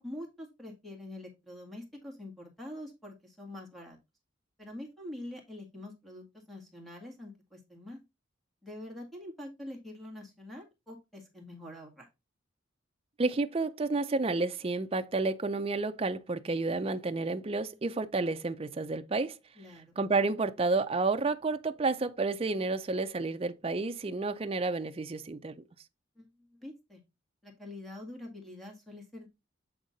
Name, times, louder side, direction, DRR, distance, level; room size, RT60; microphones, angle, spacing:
voice 1, 0.0-4.0 4.6-8.0 8.6-12.1 19.6-19.9 26.2-26.3 26.6-27.0 27.4-29.3, left 1 dB, ahead, 1.8 m, -45 dB
voice 2, 13.2-19.3 20.0-25.5, right 3 dB, 30° right, 0.4 m, -30 dB
7.9 x 3.6 x 3.9 m
head